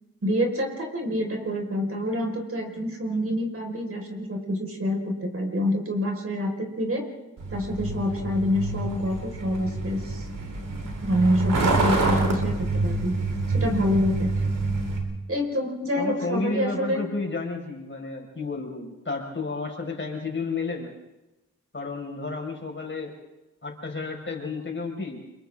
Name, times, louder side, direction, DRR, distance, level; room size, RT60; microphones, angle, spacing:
voice 1, 0.2-7.1 7.5-10.3 11.0-13.1 13.5-14.3 15.3-17.0, equal, 45° right, 2 dB, 5.2 m, -27 dB
Truck, 7.4-15.0, right 3 dB, 85° right, 3.7 m, -27 dB
voice 2, 16.0-21.0 21.7-23.1 23.6-25.3, left 3 dB, 40° left, 1 dB, 5.5 m, -32 dB
29.0 x 23.5 x 3.8 m, 0.99 s
cardioid pair, 50°, 31 cm